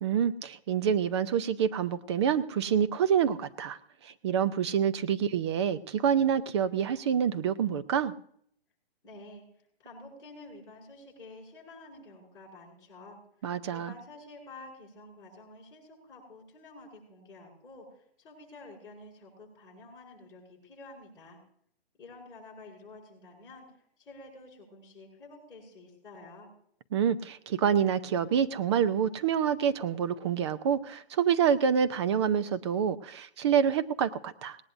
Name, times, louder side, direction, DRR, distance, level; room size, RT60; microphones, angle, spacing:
voice 1, 0.0-8.1 13.4-13.9 26.9-34.6, right 8 dB, 25° right, 12 dB, 0.6 m, -27 dB
voice 2, 9.0-9.4 9.8-13.2 13.7-17.9 18.2-21.4 22.0-23.6 24.0-26.5, left 2 dB, 10° left, -6 dB, 7.5 m, -50 dB
19.0 x 18.5 x 2.6 m, 0.65 s
hypercardioid pair, 150°, 32 cm